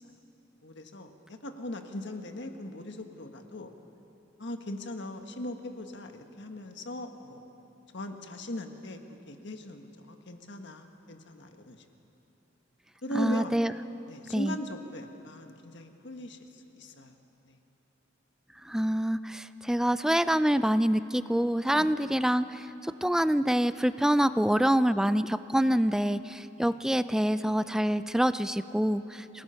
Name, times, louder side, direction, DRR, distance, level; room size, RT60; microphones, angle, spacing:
voice 1, 0.6-3.7 4.4-7.4 7.9-9.0 9.3-11.8 13.0-13.6 14.1-17.1 17.5-17.6 21.7-21.9 26.6-26.7, equal, 65° left, 5 dB, 1.5 m, -39 dB
voice 2, 13.1-13.7 14.3-14.6 18.6-29.4, equal, 5° right, 13 dB, 0.4 m, -26 dB
27.0 x 18.0 x 5.7 m, 3.0 s
head